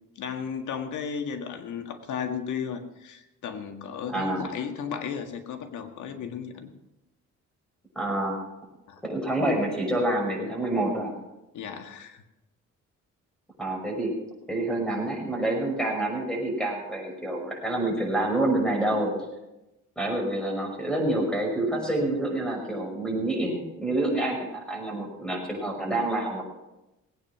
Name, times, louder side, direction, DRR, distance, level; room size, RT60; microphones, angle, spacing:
voice 1, 0.2-6.7 8.9-9.0 11.5-12.2, left 7 dB, 75° left, 6 dB, 1.8 m, -34 dB
voice 2, 4.1-4.5 8.0-8.4 9.0-11.1 13.6-14.1 14.5-19.1 20.0-26.4, right 1 dB, 5° left, 1 dB, 5.6 m, -27 dB
19.0 x 9.1 x 6.0 m, 0.96 s
cardioid pair, 90°, 30 cm